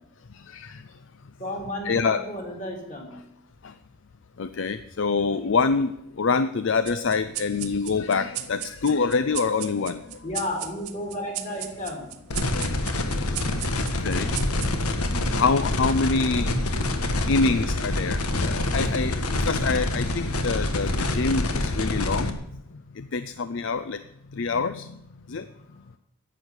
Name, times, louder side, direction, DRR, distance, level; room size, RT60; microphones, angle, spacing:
voice 1, 0.3-0.8 1.8-2.2 3.6-3.7 4.4-10.2 12.5-12.7 14.0-14.3 15.3-16.5 17.3-22.4 22.9-24.0 24.3-25.0 25.3-25.5, left 4 dB, 55° left, 12 dB, 0.5 m, -26 dB
voice 2, 1.4-3.1 10.2-12.0, left 1 dB, 35° left, 1 dB, 3.3 m, -32 dB
sound 1, 6.9-15.7, right 12 dB, 80° right, 1.1 m, -38 dB
sound 2, 12.3-22.3, left 1 dB, 85° left, 1.5 m, -26 dB
11.0 x 8.2 x 9.9 m, 0.80 s
head